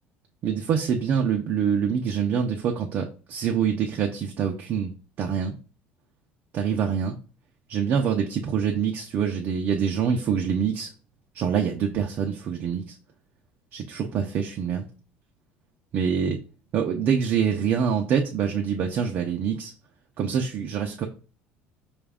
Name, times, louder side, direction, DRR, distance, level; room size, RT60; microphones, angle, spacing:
voice 1, 0.4-4.9 5.2-5.5 6.5-7.2 7.7-10.9 11.3-13.0 13.7-14.9 15.9-16.4 16.7-19.7 20.2-21.1, right 7 dB, 45° right, 2 dB, 0.5 m, -25 dB
5.0 x 2.4 x 3.4 m, 0.36 s
cardioid pair, 145°, 4 cm